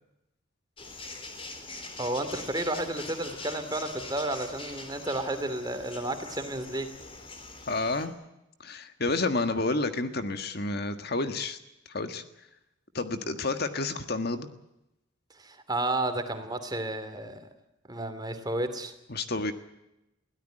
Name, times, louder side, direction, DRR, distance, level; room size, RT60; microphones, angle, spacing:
sound 1, 0.8-8.1, left 3 dB, 30° left, 3.7 m, -43 dB
voice 1, 2.0-6.9 15.4-17.4 17.9-18.9, right 1 dB, 20° right, 9 dB, 2.6 m, -32 dB
voice 2, 7.7-8.1 8.6-11.6 11.9-12.2 12.9-14.5 19.1-19.5, left 3 dB, 50° left, 9 dB, 1.6 m, -30 dB
23.5 x 17.0 x 9.0 m, 0.89 s
head